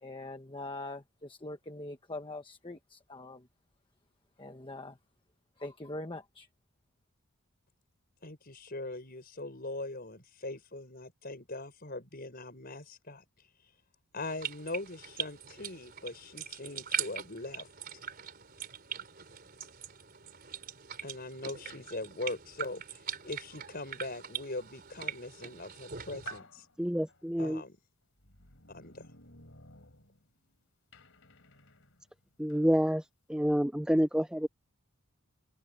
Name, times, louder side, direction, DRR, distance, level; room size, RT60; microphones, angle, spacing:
voice 1, 0.0-3.5 4.4-5.0 5.6-6.5, left 2 dB, 20° left, 1.2 m, -43 dB
voice 2, 8.2-13.2 14.1-17.7 21.0-23.0 23.2-26.7 27.4-27.8 28.7-29.1, left 2 dB, 40° left, 5.8 m, -41 dB
sound 1, 14.2-26.4, right 8 dB, 40° right, 4.1 m, -41 dB
sound 2, 25.7-25.8 26.2-27.5 28.2-30.5 30.9-32.7, left 2 dB, 60° left, 3.9 m, -57 dB
voice 3, 26.8-27.6 32.4-33.0 33.3-34.5, equal, 5° right, 0.5 m, -28 dB
open air
head